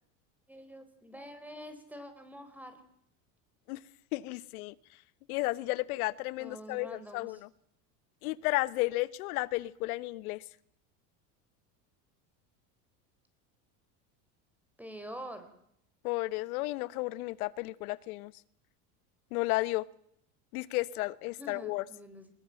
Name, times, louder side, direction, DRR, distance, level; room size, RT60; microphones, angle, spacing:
voice 1, 0.5-2.8 6.4-7.4 14.8-15.5 21.4-22.3, equal, 5° right, 9 dB, 4.2 m, -46 dB
voice 2, 4.1-4.7 5.3-7.5 8.2-10.4 16.0-18.3 19.3-19.8 20.5-21.8, left 20 dB, 80° left, 18 dB, 1.3 m, -33 dB
23.5 x 21.0 x 7.8 m, 0.74 s
supercardioid pair, 125°, 43 cm